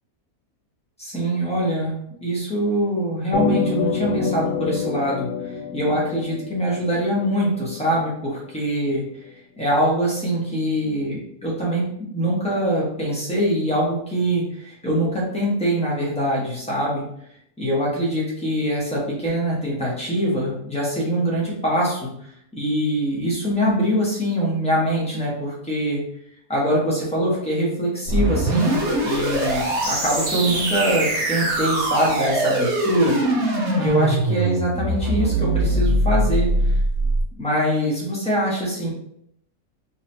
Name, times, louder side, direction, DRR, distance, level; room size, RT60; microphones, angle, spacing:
voice 1, 1.0-9.0 9.6-17.0 17.6-22.1 22.5-26.0 26.5-33.2 33.8-36.8 37.3-38.9, right 1 dB, 5° left, -6 dB, 1.1 m, -23 dB
sound 1, 3.3-7.9, left 6 dB, 90° left, 1.5 m, -27 dB
sound 2, 28.1-37.2, right 1 dB, 70° right, 1.4 m, -22 dB
4.1 x 3.0 x 2.7 m, 0.71 s
omnidirectional pair, 1.6 m